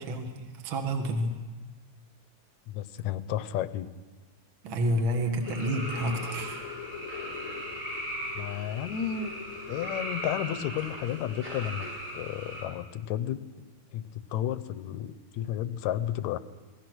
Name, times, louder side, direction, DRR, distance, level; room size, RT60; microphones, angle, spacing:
voice 1, 0.0-1.4 4.6-6.6, right 1 dB, 45° right, 4 dB, 2.3 m, -29 dB
voice 2, 2.7-3.9 8.3-9.4 9.7-13.7 13.9-16.4, left 11 dB, 75° left, 13 dB, 2.1 m, -32 dB
sound 1, 5.2-12.5, left 8 dB, 55° left, 1.6 m, -45 dB
sound 2, 5.4-12.6, right 1 dB, 75° right, 9.6 m, -38 dB
28.5 x 20.0 x 6.2 m, 1.3 s
omnidirectional pair, 3.4 m